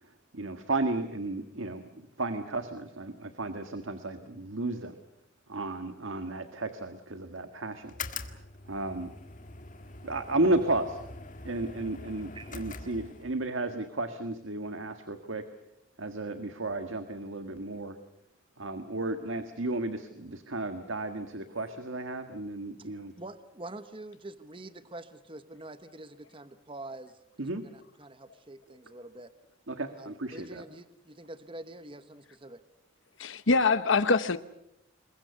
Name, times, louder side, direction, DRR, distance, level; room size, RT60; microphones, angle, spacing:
voice 1, 0.0-5.0 5.5-7.9 8.2-8.4 8.7-9.1 10.0-11.0 11.4-15.4 16.0-18.0 18.6-23.1 27.4-27.6 29.7-30.6, right 2 dB, 80° right, 8 dB, 1.6 m, -33 dB
sound 1, 7.8-13.5, left 4 dB, 40° left, 1.8 m, -43 dB
voice 2, 23.2-29.3 30.0-32.6, right 2 dB, 25° right, 11 dB, 1.0 m, -46 dB
voice 3, 33.2-34.4, left 4 dB, 75° left, 12 dB, 0.9 m, -24 dB
27.0 x 22.5 x 6.8 m, 0.78 s
head